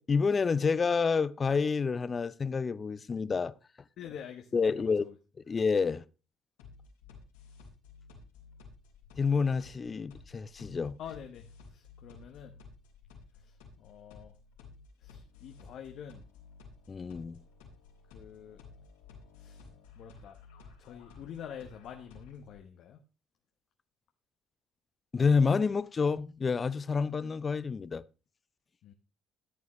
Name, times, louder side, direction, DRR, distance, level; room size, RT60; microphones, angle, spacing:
voice 1, 0.0-3.5 4.5-5.0 5.5-6.0 9.2-11.0 16.9-17.4 25.1-28.0, left 5 dB, 35° left, 0.6 m, -28 dB
voice 2, 4.0-5.1 11.0-12.5 13.3-14.3 15.0-16.2 18.1-18.6 19.4-19.7 19.9-20.4 20.8-23.0 28.8-28.9, left 8 dB, 65° left, 0.9 m, -47 dB
sound 1, 6.6-22.6, left 4 dB, 90° left, 3.6 m, -54 dB
13.5 x 8.4 x 3.1 m
hypercardioid pair, 60°, 0 cm